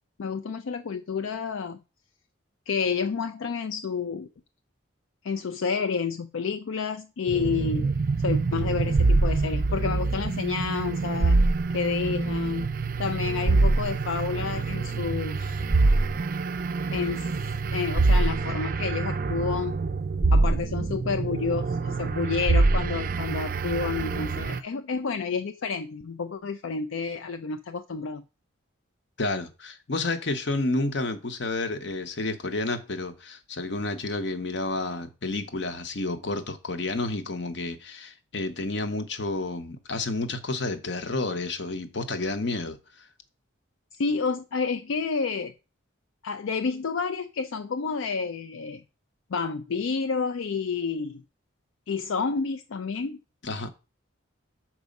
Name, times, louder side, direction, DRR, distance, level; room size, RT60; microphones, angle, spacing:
voice 1, 0.2-1.8 2.7-4.3 5.2-7.9 8.2-11.4 11.7-12.6 13.0-15.6 16.9-19.7 20.3-28.2 43.9-45.5 46.2-48.8 49.3-51.2 51.9-53.2, left 5 dB, 75° left, 0.4 m, -30 dB
sound 1, 7.3-24.6, right 3 dB, 45° right, 0.4 m, -25 dB
voice 2, 29.2-43.1 53.4-53.7, left 2 dB, 60° left, 0.8 m, -30 dB
6.1 x 4.7 x 5.3 m
head